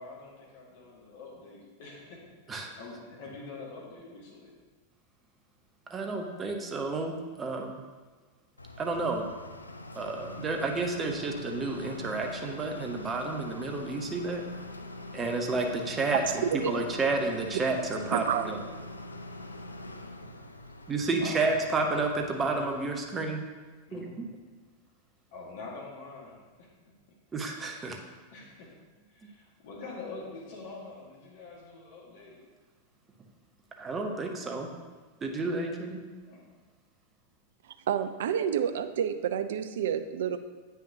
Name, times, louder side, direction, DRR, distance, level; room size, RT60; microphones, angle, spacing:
voice 1, 0.0-4.5 21.1-21.4 23.9-24.1 25.3-26.7 28.3-28.7 29.1-32.4 36.2-36.4, left 3 dB, 50° left, -2 dB, 1.7 m, -45 dB
voice 2, 5.9-7.8 8.8-9.3 10.0-14.4 15.1-16.2 16.5-18.6 20.9-23.4 23.9-24.3 27.3-28.0 33.8-34.7 35.2-36.0, right 3 dB, 20° right, 3 dB, 0.8 m, -31 dB
sound 1, 8.6-23.3, left 1 dB, 80° left, 0.4 m, -43 dB
voice 3, 16.3-16.7 18.1-18.5 37.6-40.4, right 8 dB, 60° right, 11 dB, 0.4 m, -29 dB
8.5 x 5.8 x 2.8 m, 1.4 s
figure-of-eight pair, 90°, 0 cm